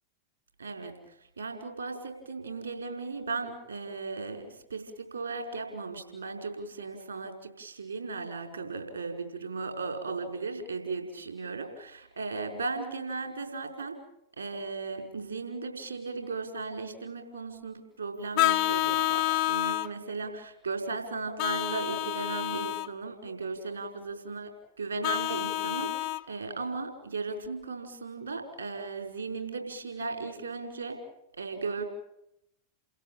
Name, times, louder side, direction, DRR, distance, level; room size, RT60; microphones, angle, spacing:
voice 1, 0.6-1.0 1.4-14.0 14.4-24.5 24.8-31.0 31.3-31.8, right 4 dB, 75° right, 5 dB, 5.1 m, -36 dB
Vehicle horn car horn honking, 18.4-19.9 21.4-22.9 25.0-26.2, left 15 dB, 45° left, 0.9 m, -28 dB
29.5 x 17.0 x 9.2 m, 0.80 s
figure-of-eight pair, 90°, 0 cm